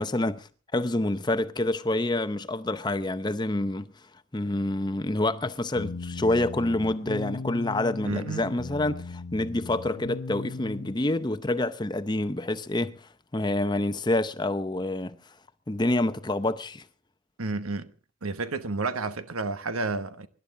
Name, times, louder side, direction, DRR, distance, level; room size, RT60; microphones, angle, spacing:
voice 1, 0.0-3.9 4.3-15.2 15.7-16.8, left 2 dB, 20° left, 0.7 m, -27 dB
sound 1, 5.7-10.9, left 3 dB, 70° left, 0.7 m, -37 dB
voice 2, 8.0-8.4 17.4-17.9 18.2-20.3, right 3 dB, 85° right, 1.3 m, -30 dB
24.5 x 12.0 x 3.8 m
head